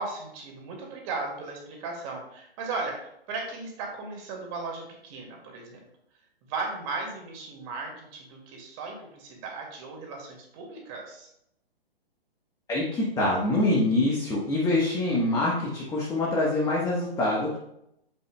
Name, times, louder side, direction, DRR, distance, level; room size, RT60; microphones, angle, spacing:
voice 1, 0.0-5.8 6.4-11.3, right 3 dB, 30° right, 0 dB, 2.3 m, -36 dB
voice 2, 12.7-17.6, left 2 dB, 10° left, -4 dB, 1.2 m, -25 dB
8.7 x 7.8 x 2.3 m, 0.77 s
figure-of-eight pair, 130°, 31 cm